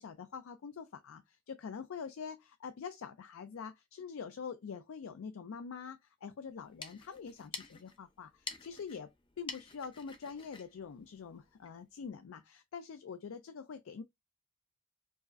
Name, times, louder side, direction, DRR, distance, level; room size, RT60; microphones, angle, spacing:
voice 1, 0.0-9.1 9.4-14.0, left 6 dB, 85° left, 0.4 m, -45 dB
sound 1, 6.5-11.8, left 4 dB, 25° left, 0.5 m, -49 dB
4.5 x 2.0 x 2.5 m
head